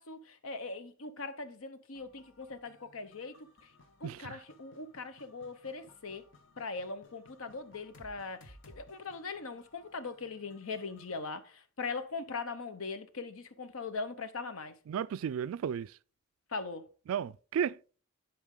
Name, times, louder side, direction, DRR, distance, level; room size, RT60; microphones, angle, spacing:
voice 1, 0.0-3.7 4.0-6.2 6.6-14.8 16.5-16.9, left 4 dB, 85° left, 0.9 m, -40 dB
sound 1, 1.9-11.2, left 1 dB, 60° left, 1.2 m, -60 dB
voice 2, 4.0-4.4 14.9-16.0 17.1-17.8, right 8 dB, 75° right, 0.3 m, -34 dB
10.5 x 4.7 x 3.7 m
head